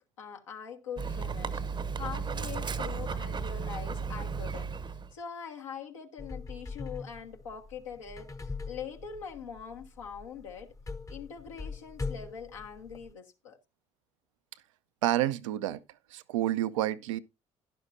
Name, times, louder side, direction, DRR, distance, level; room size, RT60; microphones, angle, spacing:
voice 1, 0.2-1.6 2.0-4.7 5.1-10.7 11.1-13.6, left 7 dB, 80° left, 1.4 m, -43 dB
Dog, 1.0-5.1, right 5 dB, 30° right, 0.8 m, -34 dB
sound 1, 6.2-13.1, left 4 dB, 20° left, 0.8 m, -42 dB
voice 2, 15.0-15.8 16.1-17.2, right 13 dB, 75° right, 0.5 m, -29 dB
11.5 x 11.0 x 2.6 m
figure-of-eight pair, 50°, 16 cm